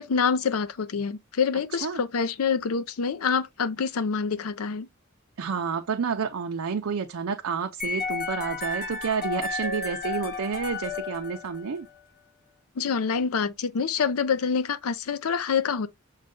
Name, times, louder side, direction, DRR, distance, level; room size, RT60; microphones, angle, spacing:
voice 1, 0.0-4.9 12.8-15.9, left 6 dB, 75° left, 0.5 m, -26 dB
voice 2, 1.7-2.0 5.4-11.9, right 6 dB, 70° right, 0.5 m, -30 dB
sound 1, 7.8-11.9, left 4 dB, 45° left, 0.8 m, -32 dB
6.3 x 2.2 x 3.6 m
head